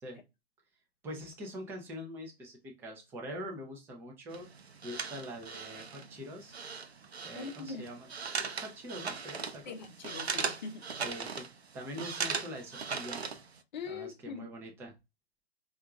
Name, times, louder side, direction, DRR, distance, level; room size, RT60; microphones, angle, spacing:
voice 1, 1.0-4.5 4.8-6.5 7.2-9.7 11.0-11.4 11.7-13.2 13.9-14.9, equal, 5° right, 0.5 m, -44 dB
sound 1, 4.3-13.6, right 5 dB, 80° right, 0.6 m, -39 dB
voice 2, 7.3-8.0 9.7-10.9 13.7-14.4, left 5 dB, 45° left, 0.6 m, -42 dB
4.4 x 2.4 x 2.3 m
figure-of-eight pair, 120°, 31 cm